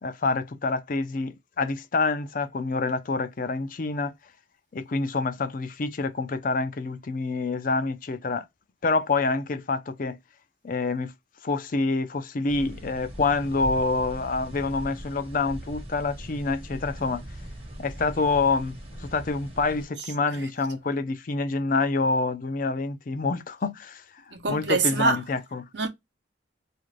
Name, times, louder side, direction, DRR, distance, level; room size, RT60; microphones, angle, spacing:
voice 1, 0.0-4.1 4.7-8.5 8.8-10.2 10.6-11.1 11.4-17.2 17.8-24.2 24.5-25.7, left 3 dB, 45° left, 0.4 m, -27 dB
sound 1, 12.5-19.8, right 1 dB, 30° right, 1.1 m, -40 dB
voice 2, 24.3-25.2 25.7-25.9, right 4 dB, 60° right, 0.8 m, -24 dB
2.5 x 2.4 x 3.1 m
head